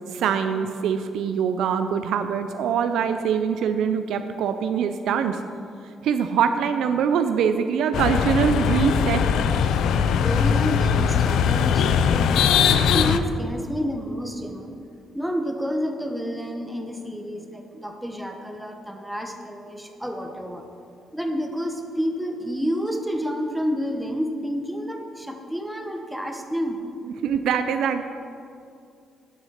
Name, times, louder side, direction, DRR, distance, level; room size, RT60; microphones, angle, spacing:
voice 1, 0.1-5.4 6.0-9.2 27.2-28.1, right 7 dB, 80° right, 8 dB, 0.4 m, -23 dB
sound 1, 7.9-13.2, left 7 dB, 80° left, 0.4 m, -20 dB
voice 2, 10.0-14.8 15.1-20.6 21.1-26.8, equal, 5° right, 4 dB, 1.1 m, -29 dB
11.5 x 6.0 x 5.8 m, 2.4 s
cardioid pair, 90°, 0 cm